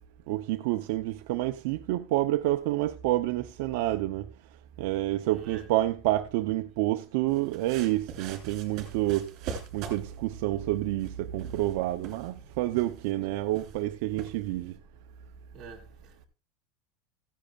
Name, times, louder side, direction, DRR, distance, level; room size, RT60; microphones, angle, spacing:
voice 1, 0.3-4.2 4.8-9.3 9.7-14.7, right 16 dB, 55° right, 0.5 m, -28 dB
voice 2, 5.2-5.7 9.8-9.9 13.4-13.5 15.5-16.3, right 5 dB, 20° right, 2.7 m, -46 dB
sound 1, 7.3-14.8, right 7 dB, 35° right, 3.4 m, -44 dB
16.0 x 10.0 x 2.3 m
supercardioid pair, 175°, 0 cm